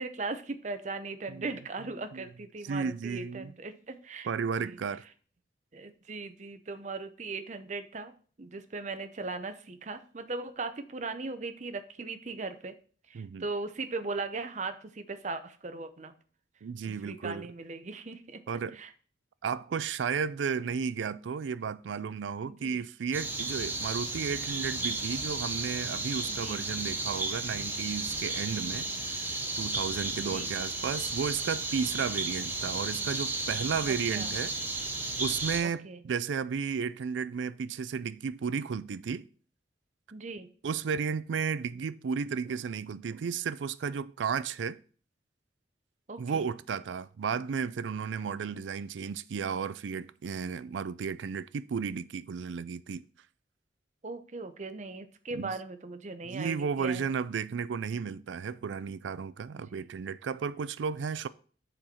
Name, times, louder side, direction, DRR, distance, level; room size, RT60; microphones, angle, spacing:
voice 1, 0.0-4.3 4.6-4.8 5.7-8.1 8.4-12.8 13.1-16.1 16.8-18.4 18.7-18.9 22.5-22.8 26.3-26.6 30.2-30.5 33.9-34.3 35.6-36.0 40.1-40.5 46.1-46.5 54.0-57.1 59.5-59.9, right 3 dB, 40° right, 0.6 m, -39 dB
voice 2, 2.6-3.5 4.3-5.0 13.1-13.4 16.6-17.4 18.5-18.8 19.4-28.9 29.2-34.5 35.2-39.3 40.6-44.8 46.2-53.0 55.3-55.5 56.3-61.3, right 6 dB, 85° right, 0.4 m, -33 dB
sound 1, 23.1-35.6, right 2 dB, 10° right, 0.8 m, -34 dB
7.7 x 4.5 x 4.2 m
head